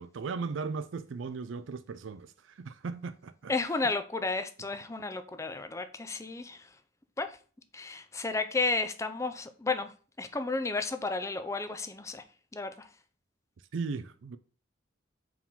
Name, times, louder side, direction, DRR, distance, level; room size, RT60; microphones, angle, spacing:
voice 1, 0.0-3.5 13.7-14.4, right 4 dB, 90° right, 0.4 m, -37 dB
voice 2, 3.5-6.7 7.2-7.4 7.7-12.2 12.5-12.9, left 3 dB, 15° left, 0.5 m, -33 dB
4.7 x 3.7 x 5.5 m
head